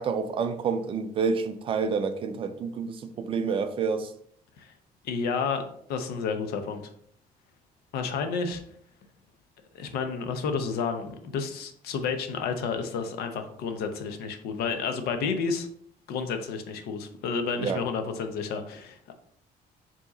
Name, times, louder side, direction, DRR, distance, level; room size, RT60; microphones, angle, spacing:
voice 1, 0.0-4.1 17.6-17.8, right 5 dB, 35° right, 9 dB, 0.3 m, -28 dB
voice 2, 5.0-5.6 5.9-6.9 7.9-8.6 9.7-15.7 16.1-19.1, left 5 dB, 75° left, 7 dB, 0.7 m, -31 dB
4.7 x 2.9 x 3.8 m, 0.65 s
cardioid pair, 175°, 16 cm